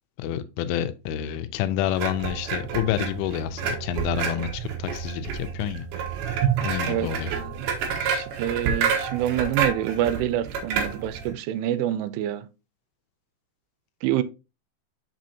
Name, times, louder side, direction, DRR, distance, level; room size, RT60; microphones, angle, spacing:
voice 1, 0.2-5.9 6.6-7.3, left 10 dB, 85° left, 3.1 m, -28 dB
sound 1, 2.0-11.3, right 7 dB, 65° right, 2.7 m, -29 dB
voice 2, 6.8-7.7 7.9-12.4 14.0-14.2, right 12 dB, 85° right, 3.0 m, -27 dB
6.9 x 6.1 x 2.8 m
omnidirectional pair, 5.5 m